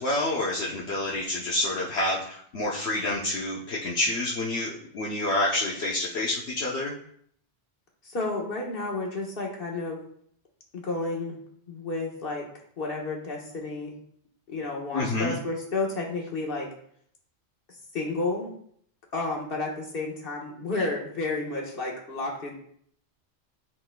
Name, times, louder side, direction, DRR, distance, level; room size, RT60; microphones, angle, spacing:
voice 1, 0.0-6.9 14.9-15.4, left 2 dB, 70° left, -4 dB, 1.1 m, -28 dB
voice 2, 8.0-10.0 10.7-11.4 11.7-12.4 12.8-13.9 14.5-16.7 17.9-18.5 19.1-22.5, left 3 dB, 55° left, -1 dB, 1.5 m, -31 dB
11.0 x 3.9 x 2.2 m, 0.65 s
omnidirectional pair, 1.2 m